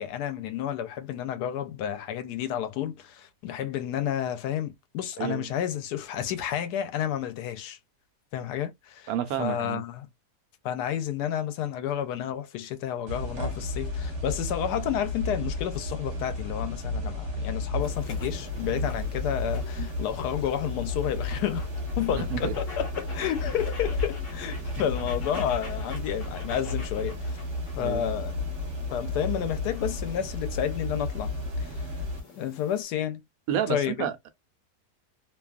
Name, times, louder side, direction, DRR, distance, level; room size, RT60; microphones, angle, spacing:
voice 1, 0.0-7.8 8.3-9.1 9.4-10.1 10.6-21.7 22.0-27.4 27.8-28.3 28.9-31.3 31.6-31.8 32.4-33.2 33.7-34.1, left 10 dB, 90° left, 1.1 m, -31 dB
voice 2, 9.1-9.8 19.8-19.9 22.2-22.5 27.8-28.1 33.5-34.3, right 9 dB, 75° right, 1.0 m, -30 dB
sound 1, 13.1-32.2, left 2 dB, 50° right, 1.2 m, -33 dB
sound 2, 17.8-32.8, left 2 dB, 60° left, 1.2 m, -46 dB
2.8 x 2.3 x 2.3 m
omnidirectional pair, 1.7 m